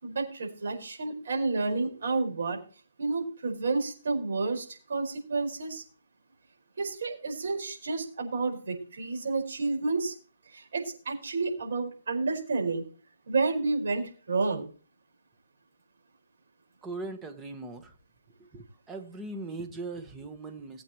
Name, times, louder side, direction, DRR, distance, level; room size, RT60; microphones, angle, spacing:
voice 1, 0.0-2.6 3.0-5.8 6.8-10.1 10.5-12.8 13.3-14.7, right 3 dB, 70° right, 2 dB, 4.8 m, -30 dB
voice 2, 16.8-17.9 18.4-20.8, right 3 dB, 10° right, 5 dB, 1.3 m, -39 dB
19.5 x 8.4 x 3.0 m, 0.38 s
hypercardioid pair, 160°, 0 cm